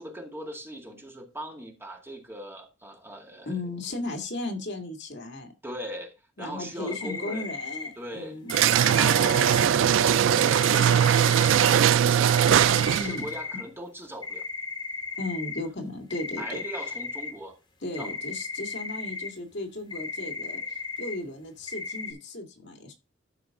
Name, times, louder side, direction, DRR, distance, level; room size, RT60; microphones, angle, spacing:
voice 1, 0.0-3.6 3.9-4.1 5.6-7.5 8.0-8.4 8.8-9.5 10.0-14.4 16.4-17.6 18.0-18.1, equal, 15° right, 2.2 m, -40 dB
voice 2, 3.5-5.5 6.4-8.6 12.9-13.3 15.2-16.6 17.8-22.9, left 2 dB, 65° left, 2.0 m, -35 dB
sound 1, 6.9-7.9 8.5-9.8 10.4-11.8 12.3-13.6 14.2-15.6 16.1-17.3 17.9-19.3 19.9-21.1 21.7-22.1, left 4 dB, 25° left, 2.5 m, -36 dB
sound 2, 8.5-13.2, right 9 dB, 80° right, 0.3 m, -20 dB
13.0 x 4.9 x 3.6 m
head